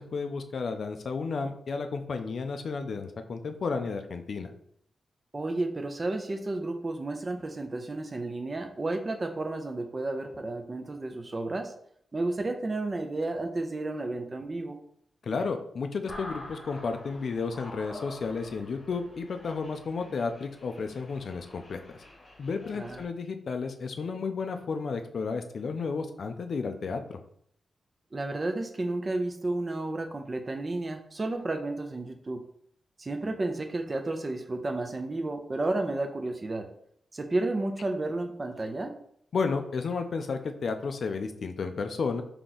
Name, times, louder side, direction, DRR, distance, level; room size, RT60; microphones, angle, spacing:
voice 1, 0.0-4.5 15.2-21.8 22.4-27.2 39.3-42.2, left 4 dB, 55° left, 7 dB, 0.4 m, -32 dB
voice 2, 5.3-11.7 12.1-14.8 22.7-23.0 28.1-32.4 33.0-36.7 37.1-38.9, right 2 dB, 25° right, 5 dB, 0.4 m, -32 dB
sound 1, 16.1-23.0, left 1 dB, 35° left, 0.9 m, -46 dB
3.6 x 2.8 x 3.9 m, 0.68 s
wide cardioid pair, 165°, 0 cm